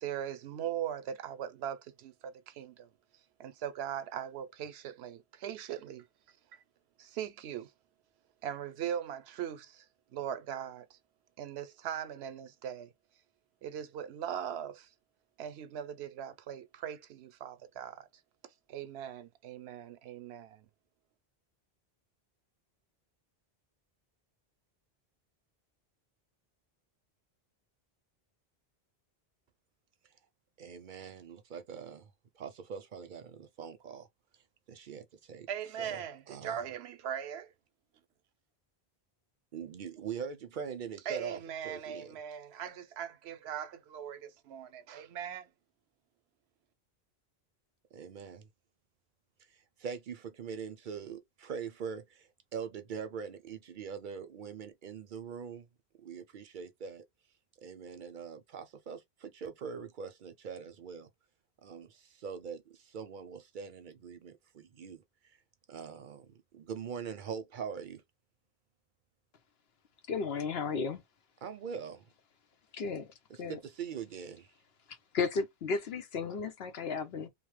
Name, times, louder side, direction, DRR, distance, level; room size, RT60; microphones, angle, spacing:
voice 1, 0.0-2.9 3.4-6.1 6.5-6.6 7.0-7.7 8.4-9.9 10.1-11.0 11.4-12.9 13.6-14.9 15.4-18.1 18.7-20.6 35.5-37.5 41.1-45.5, right 9 dB, 90° right, 0.8 m, -40 dB
voice 2, 30.6-34.1 34.7-35.5 35.8-36.6 39.5-41.4 41.6-42.2 47.9-48.5 49.5-55.7 56.0-57.0 57.6-61.1 61.6-65.0 65.7-66.3 66.5-68.0 71.4-72.0 73.5-74.5, right 6 dB, 60° right, 0.6 m, -42 dB
voice 3, 70.1-71.0 72.7-73.6 74.9-77.3, left 5 dB, 75° left, 1.0 m, -34 dB
2.9 x 2.0 x 3.1 m
omnidirectional pair, 1.1 m